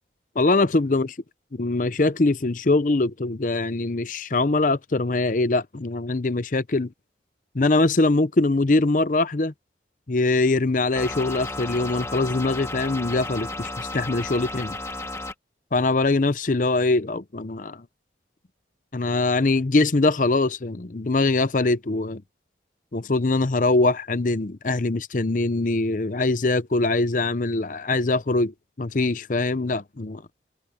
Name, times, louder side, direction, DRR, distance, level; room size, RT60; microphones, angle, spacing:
voice 1, 0.4-1.2 1.5-6.9 7.5-9.5 10.1-14.8 15.7-17.8 18.9-22.2 22.9-30.2, left 2 dB, 45° left, 0.7 m, -22 dB
sound 1, 11.0-15.3, left 2 dB, 15° left, 1.7 m, -33 dB
head